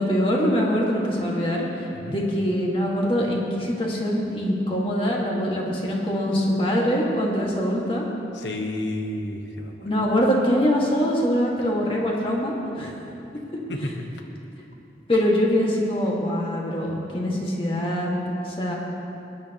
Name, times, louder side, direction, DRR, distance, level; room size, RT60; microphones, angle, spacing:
voice 1, 0.0-1.7 2.0-8.1 9.8-12.9 13.8-13.9 15.1-18.1 18.4-18.7, equal, 30° left, -3 dB, 1.8 m, -23 dB
voice 2, 8.3-9.9 13.7-13.9, left 1 dB, 90° left, 3 dB, 1.2 m, -31 dB
21.0 x 10.5 x 3.0 m, 2.8 s
head